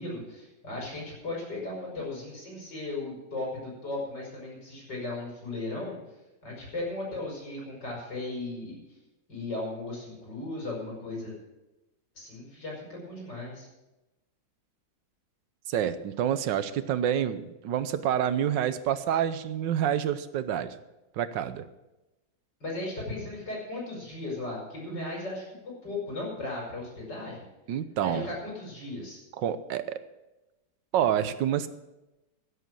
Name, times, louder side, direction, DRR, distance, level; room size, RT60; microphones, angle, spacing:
voice 1, 0.0-6.0 6.4-8.8 9.3-11.4 12.2-13.7 22.6-27.5 28.0-29.2, left 2 dB, 75° left, -3 dB, 6.0 m, -36 dB
voice 2, 15.7-20.7 21.1-21.6 27.7-28.3 29.4-30.0 30.9-31.7, right 10 dB, 85° right, 13 dB, 1.5 m, -28 dB
16.0 x 8.1 x 6.3 m, 0.99 s
omnidirectional pair, 1.9 m